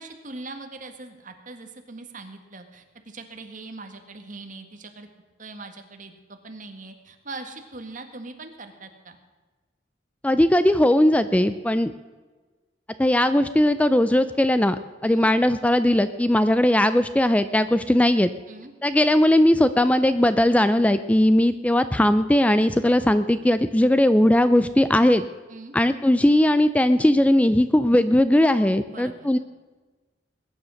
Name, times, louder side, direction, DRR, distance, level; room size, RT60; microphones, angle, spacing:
voice 1, 0.0-5.1 5.4-9.2 15.0-15.3 18.5-18.7 25.5-25.7 28.9-29.3, right 3 dB, 45° right, 6 dB, 1.8 m, -41 dB
voice 2, 10.2-11.9 13.0-18.3 18.8-25.2 25.7-29.4, left 1 dB, 10° left, 12 dB, 0.4 m, -19 dB
20.5 x 10.0 x 6.4 m, 1.3 s
head